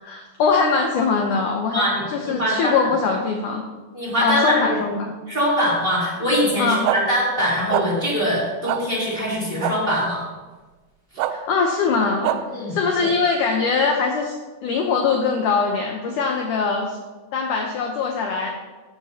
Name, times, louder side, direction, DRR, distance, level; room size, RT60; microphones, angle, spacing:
voice 1, 0.0-3.6 4.2-5.1 6.6-6.8 11.3-12.4 12.7-14.4 14.6-17.0 17.3-18.5, left 5 dB, 80° left, 2 dB, 1.8 m, -22 dB
voice 2, 1.7-2.9 3.9-5.0 5.3-10.2 12.5-13.1, equal, 15° right, -6 dB, 2.7 m, -23 dB
sound 1, 6.8-7.0 7.7-7.9 8.7-8.8 9.6-9.7 11.2-11.3 12.2-12.4, right 14 dB, 90° right, 2.8 m, -22 dB
14.5 x 9.0 x 2.8 m, 1.2 s
omnidirectional pair, 4.8 m